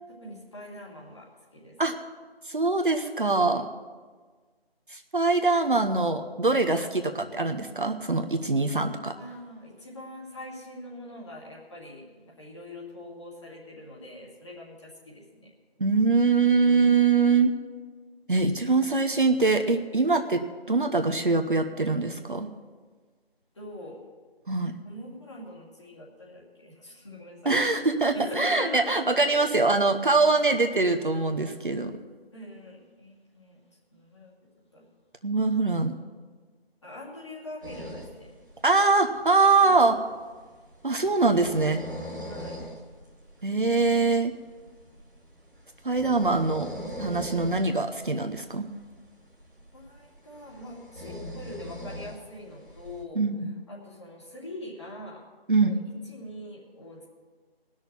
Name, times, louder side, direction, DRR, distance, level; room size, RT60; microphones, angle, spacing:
voice 1, 0.2-1.8 9.1-15.5 16.7-17.1 23.5-24.0 24.8-27.5 28.1-29.3 32.3-33.6 33.9-34.3 34.7-34.9 36.8-38.4 39.6-39.7 42.3-42.6 49.7-53.2 53.7-55.2 55.6-55.8 56.1-57.1, left 1 dB, 30° left, -5 dB, 2.4 m, -42 dB
voice 2, 2.5-3.7 4.9-9.1 15.8-17.5 18.3-20.4 20.7-22.5 24.5-24.8 27.4-32.0 35.2-35.9 38.6-40.0 40.8-41.8 43.4-44.3 45.8-46.7 47.0-48.7 53.1-53.6 55.5-55.7, right 3 dB, 55° right, 5 dB, 0.9 m, -23 dB
sound 1, 37.6-53.0, left 1 dB, 20° right, 1.7 m, -42 dB
18.5 x 6.5 x 7.2 m, 1.4 s
figure-of-eight pair, 165°, 31 cm